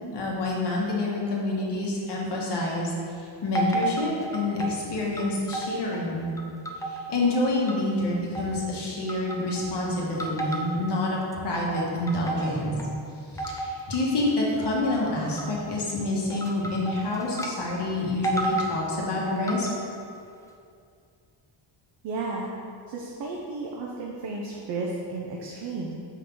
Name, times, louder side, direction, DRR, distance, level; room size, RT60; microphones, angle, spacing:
voice 1, 0.1-6.3 6.9-12.7 13.3-19.7, left 2 dB, 60° left, -4 dB, 1.5 m, -27 dB
sound 1, 3.5-4.8 5.2-6.0 6.4-8.0 8.3-8.7 9.1-9.8 10.2-11.0 11.3-12.9 13.4-14.0 14.3-14.6 15.4-15.7 16.3-17.5 17.8-17.9 18.2-18.8 19.3-19.9, right 2 dB, 10° left, 0.3 m, -32 dB
voice 2, 22.0-22.5 22.9-25.9, right 3 dB, 65° right, -2 dB, 0.8 m, -33 dB
5.6 x 5.5 x 3.8 m, 2.4 s
wide cardioid pair, 145°, 46 cm